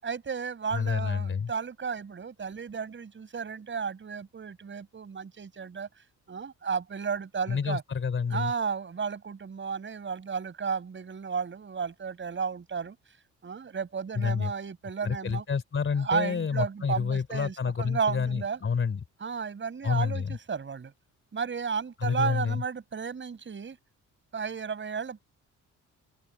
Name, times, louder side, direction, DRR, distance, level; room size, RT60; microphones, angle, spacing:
voice 1, 0.0-5.9 6.3-7.8 8.3-13.0 13.4-15.5 16.0-18.6 19.2-20.9 21.3-23.8 24.3-25.2, right 6 dB, 40° right, 7.0 m, -33 dB
voice 2, 0.7-1.5 7.5-8.5 14.2-14.5 15.0-19.0 19.8-20.4 22.0-22.6, left 6 dB, 40° left, 3.4 m, -29 dB
open air
cardioid pair, 90°, 30 cm